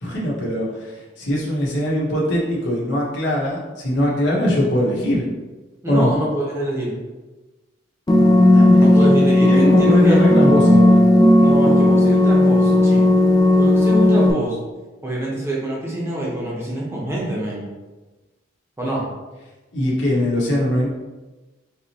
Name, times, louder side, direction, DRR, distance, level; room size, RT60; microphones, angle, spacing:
voice 1, 0.0-5.2 5.9-6.1 8.5-9.1 9.4-11.0 19.7-20.9, left 1 dB, 65° left, -5 dB, 1.1 m, -21 dB
voice 2, 5.8-7.0 8.8-10.2 11.4-13.2 13.6-14.6 15.0-17.7 18.8-19.0, right 1 dB, 15° right, -4 dB, 0.9 m, -25 dB
sound 1, 8.1-14.3, left 1 dB, 20° left, 0.4 m, -14 dB
3.9 x 2.9 x 2.9 m, 1.2 s
head